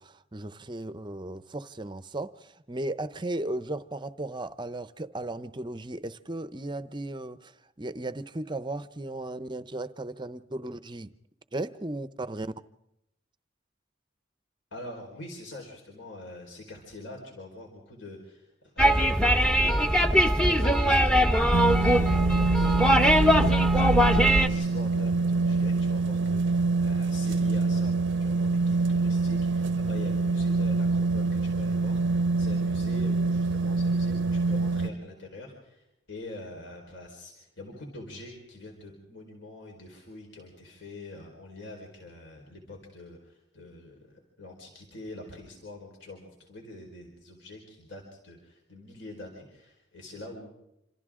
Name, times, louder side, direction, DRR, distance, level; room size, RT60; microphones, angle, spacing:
voice 1, 0.0-2.3 2.7-7.5 7.8-11.1 11.5-12.5, right 2 dB, 25° right, 13 dB, 0.7 m, -35 dB
voice 2, 14.7-19.4 20.1-22.2 22.9-50.5, left 2 dB, 65° left, 0 dB, 4.5 m, -44 dB
Salvador repentista, 18.8-24.5, equal, 5° left, 0.9 m, -21 dB
sound 1, 21.5-34.9, right 3 dB, 65° right, 0.6 m, -26 dB
27.0 x 26.5 x 3.7 m, 0.85 s
head